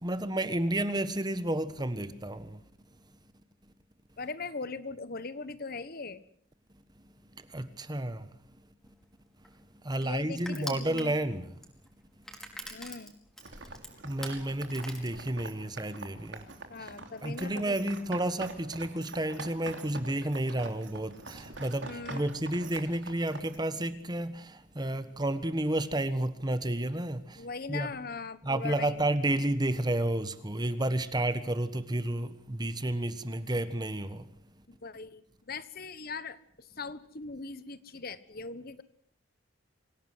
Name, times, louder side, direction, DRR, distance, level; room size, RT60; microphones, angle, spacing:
voice 1, 0.0-2.6 7.5-8.2 9.8-11.5 14.0-16.4 17.2-27.4 27.7-27.9 28.4-34.2, right 1 dB, 20° right, 1.4 m, -31 dB
voice 2, 4.2-6.2 10.0-11.2 12.7-13.1 16.7-17.8 21.9-22.3 27.4-29.0 34.7-38.8, left 4 dB, 50° left, 1.4 m, -40 dB
Crushing, 8.8-15.7, equal, ahead, 4.9 m, -45 dB
sound 1, 13.4-23.6, right 3 dB, 70° right, 3.3 m, -46 dB
26.0 x 17.5 x 8.0 m
head